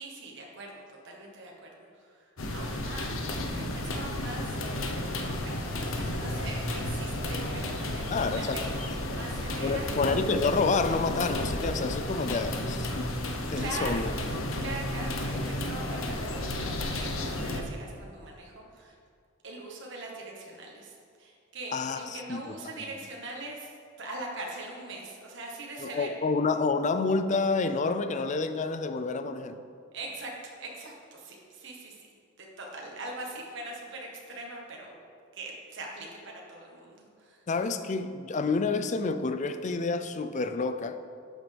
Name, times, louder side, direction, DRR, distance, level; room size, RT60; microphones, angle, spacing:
voice 1, 0.0-8.7 9.0-9.9 13.6-14.1 14.3-19.0 19.4-26.1 29.9-32.0 32.4-35.0 35.3-37.4, right 2 dB, 65° right, -1 dB, 1.5 m, -42 dB
sound 1, 2.4-17.6, left 1 dB, 85° left, 1.0 m, -32 dB
voice 2, 8.1-8.6 9.6-13.1 13.5-14.1 21.7-22.4 25.8-29.6 37.5-41.0, left 4 dB, 35° left, 10 dB, 0.5 m, -28 dB
11.5 x 7.3 x 3.5 m, 2.3 s
head